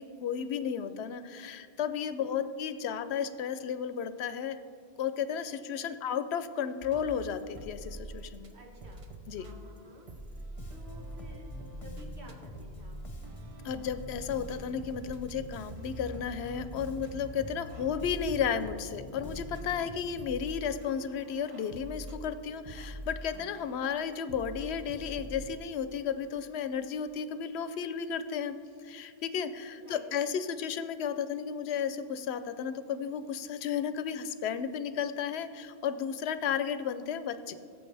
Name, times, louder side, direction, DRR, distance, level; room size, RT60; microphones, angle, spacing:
voice 1, 0.0-4.6 5.0-8.5 9.3-9.5 13.6-28.6 28.8-37.5, left 7 dB, 80° left, 12 dB, 0.8 m, -33 dB
voice 2, 2.2-2.5 5.8-6.0 8.5-9.0 9.3-11.5 11.8-13.0 19.6-20.2 29.7-30.0 30.8-30.9, right 1 dB, 80° right, 1 dB, 1.7 m, -54 dB
sound 1, 6.8-8.5 8.8-25.5, right 1 dB, 35° right, 0.7 m, -45 dB
Bass guitar, 10.6-20.5, left 3 dB, 35° left, 0.9 m, -48 dB
17.0 x 7.6 x 3.3 m, 2.3 s
omnidirectional pair, 1.1 m